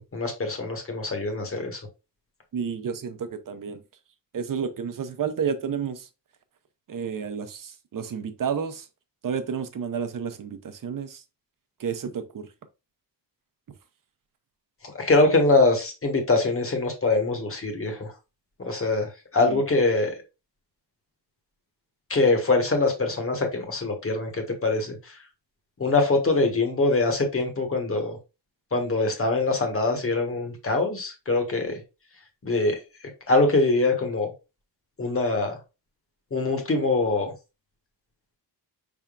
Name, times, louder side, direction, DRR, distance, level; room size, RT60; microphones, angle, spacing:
voice 1, 0.0-1.8 14.9-18.1 18.7-19.1 19.3-20.1 22.1-25.0 25.8-28.2 28.7-31.7 32.4-32.7 33.3-34.3 35.0-35.6 36.3-37.3, left 3 dB, 30° left, 1.2 m, -23 dB
voice 2, 2.5-3.8 4.3-6.1 6.9-8.8 9.2-11.2 11.8-12.5 19.5-19.6, right 7 dB, 50° right, 0.7 m, -31 dB
5.5 x 3.6 x 2.4 m
wide cardioid pair, 165°, 42 cm